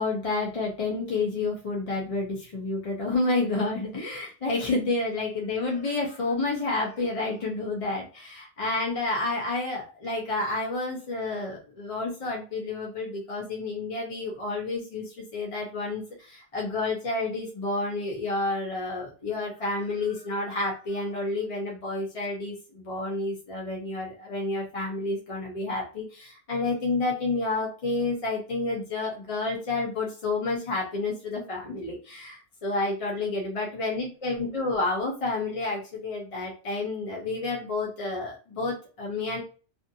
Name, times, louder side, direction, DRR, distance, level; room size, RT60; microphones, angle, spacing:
voice 1, 0.0-39.4, left 3 dB, 35° left, -3 dB, 0.6 m, -30 dB
2.5 x 2.4 x 2.6 m, 0.36 s
omnidirectional pair, 1.2 m